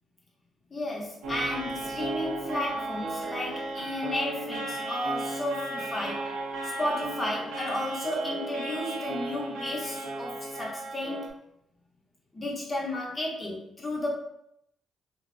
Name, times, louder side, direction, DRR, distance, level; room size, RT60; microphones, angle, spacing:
voice 1, 0.7-6.3 6.6-11.3 12.3-14.2, left 1 dB, 25° left, -2 dB, 0.8 m, -33 dB
sound 1, 1.2-11.3, right 2 dB, 85° right, 0.6 m, -35 dB
2.5 x 2.1 x 2.5 m, 0.74 s
cardioid pair, 90°, 0 cm